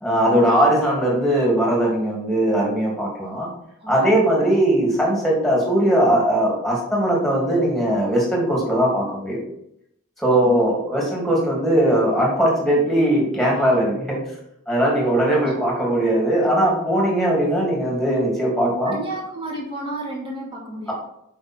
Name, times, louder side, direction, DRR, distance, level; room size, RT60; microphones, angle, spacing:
voice 1, 0.0-3.5 3.9-9.4 10.2-14.2 14.7-18.9, right 1 dB, ahead, -3 dB, 2.5 m, -19 dB
voice 2, 10.3-10.6 15.4-15.6 18.9-20.9, right 1 dB, 25° right, -2 dB, 2.2 m, -32 dB
6.8 x 5.3 x 4.4 m, 0.76 s
head